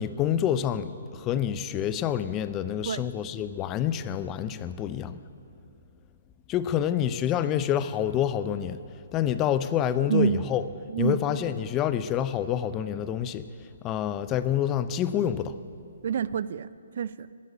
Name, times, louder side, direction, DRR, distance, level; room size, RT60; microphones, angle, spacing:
voice 1, 0.0-5.2 6.5-8.8 9.1-10.6 11.0-13.5 13.8-15.5, left 10 dB, 25° left, 14 dB, 0.4 m, -27 dB
voice 2, 10.1-10.4 10.9-11.2 16.0-17.3, right 7 dB, 60° right, 18 dB, 0.3 m, -27 dB
12.5 x 6.5 x 9.6 m, 2.4 s
hypercardioid pair, 140°, 0 cm